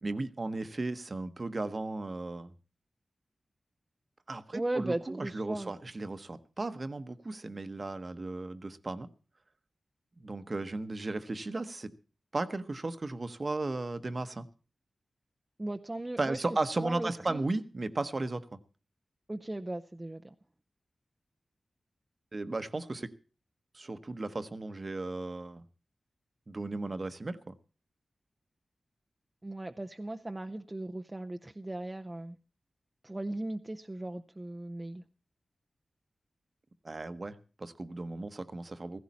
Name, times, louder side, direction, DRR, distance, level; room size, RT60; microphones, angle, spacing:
voice 1, 0.0-2.5 4.3-9.1 10.2-11.9 12.3-14.5 16.2-18.6 22.3-23.1 23.7-25.6 26.5-27.5 36.8-39.0, right 2 dB, 35° right, 1.0 m, -35 dB
voice 2, 4.5-5.7 15.6-16.4 16.8-17.4 19.3-20.3 29.4-32.4 33.0-35.0, right 1 dB, 20° right, 0.6 m, -37 dB
16.0 x 15.5 x 4.2 m
wide cardioid pair, 135°, 0 cm